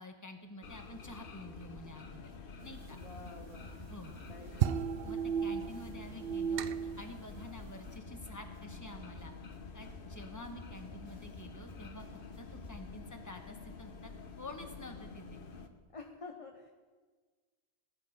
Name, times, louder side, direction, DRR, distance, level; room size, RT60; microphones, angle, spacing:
voice 1, 0.0-2.3 2.6-3.0 3.9-4.2 5.0-9.3 9.7-12.1 12.4-14.1 14.4-15.4, left 1 dB, 15° left, 5 dB, 1.2 m, -49 dB
Fan Rattling, 0.6-15.7, left 5 dB, 55° left, 1.1 m, -49 dB
sound 1, 2.6-8.0, right 8 dB, 65° right, 0.7 m, -35 dB
voice 2, 2.9-3.8 4.3-4.6 15.9-16.7, left 3 dB, 35° left, 3 dB, 0.9 m, -49 dB
sound 2, 3.0-12.9, equal, 80° left, 5.5 m, -53 dB
18.0 x 10.0 x 5.2 m, 1.4 s
omnidirectional pair, 1.1 m